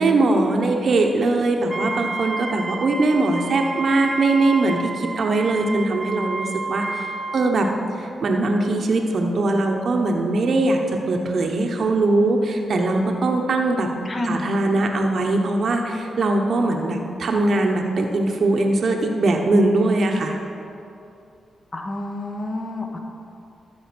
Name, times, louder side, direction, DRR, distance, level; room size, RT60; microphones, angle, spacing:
voice 1, 0.0-7.7 8.0-10.8 11.1-13.9 14.3-20.4, right 2 dB, 60° right, 2 dB, 1.0 m, -21 dB
Wind instrument woodwind instrument, 1.7-7.6, right 3 dB, 35° right, 0.6 m, -30 dB
voice 2, 14.0-14.5 21.7-23.0, left 2 dB, 35° left, 3 dB, 1.3 m, -29 dB
13.5 x 4.9 x 6.1 m, 2.7 s
cardioid pair, 65°, 0 cm